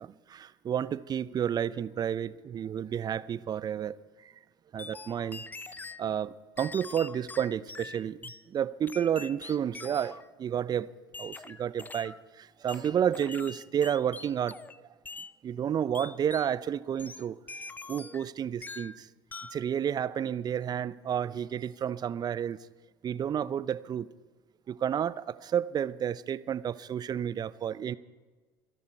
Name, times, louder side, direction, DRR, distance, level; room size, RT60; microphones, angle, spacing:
voice 1, 0.0-4.0 4.7-5.4 6.0-8.2 8.5-10.9 11.2-14.6 15.4-17.4 17.9-19.1 19.5-22.6 23.0-24.1 24.7-27.9, right 9 dB, 35° right, 0.6 m, -31 dB
sound 1, 4.8-6.0 6.6-8.4 8.9-10.3 11.1-12.2 12.7-14.8 15.1-15.3 15.9-16.5 17.0-18.3 18.6-19.0 19.3-19.7, left 3 dB, 15° left, 0.6 m, -44 dB
25.5 x 11.0 x 4.5 m
hypercardioid pair, 70°, 13 cm